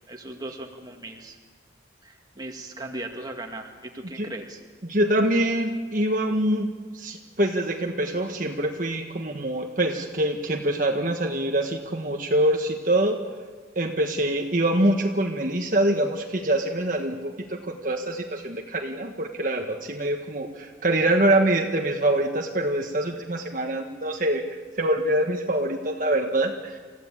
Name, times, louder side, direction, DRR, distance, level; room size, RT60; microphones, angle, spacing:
voice 1, 0.1-1.4 2.0-4.6, right 2 dB, 20° right, 2 dB, 2.2 m, -38 dB
voice 2, 4.8-6.7 6.9-13.2 13.7-24.5 24.8-26.8, right 1 dB, 45° right, 2 dB, 1.5 m, -24 dB
28.5 x 15.5 x 8.9 m, 1.4 s
head